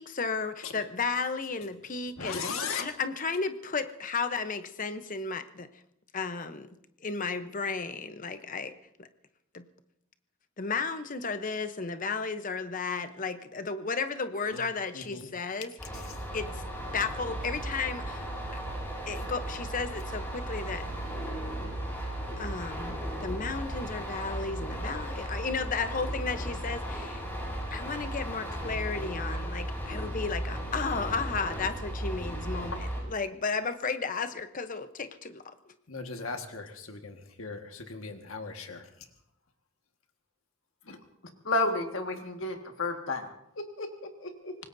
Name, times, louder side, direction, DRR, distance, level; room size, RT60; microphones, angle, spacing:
voice 1, 0.0-2.5 2.7-5.7 6.1-9.1 9.5-9.7 10.6-15.7 16.3-16.6 16.9-18.3 19.1-20.9 22.4-27.2 27.7-35.7, left 4 dB, 40° left, 10 dB, 0.9 m, -34 dB
voice 2, 2.2-2.8 14.5-14.6 14.9-15.3 35.9-38.9 40.9-41.0, left 5 dB, 80° left, 5 dB, 1.7 m, -38 dB
sound 1, 15.8-33.0, right 1 dB, 10° left, 4.8 m, -36 dB
voice 3, 41.5-43.3 43.6-44.6, left 2 dB, 65° left, 4 dB, 1.8 m, -31 dB
25.0 x 19.5 x 2.7 m, 0.79 s
head